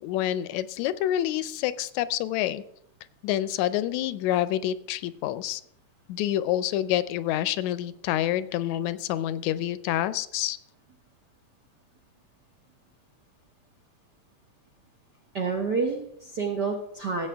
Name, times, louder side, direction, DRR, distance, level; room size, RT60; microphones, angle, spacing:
voice 1, 0.0-2.6 3.2-5.6 6.1-10.6, left 12 dB, 85° left, 15 dB, 1.9 m, -27 dB
voice 2, 15.3-17.3, right 4 dB, 65° right, 1 dB, 1.0 m, -28 dB
16.5 x 8.1 x 3.4 m, 0.72 s
omnidirectional pair, 3.3 m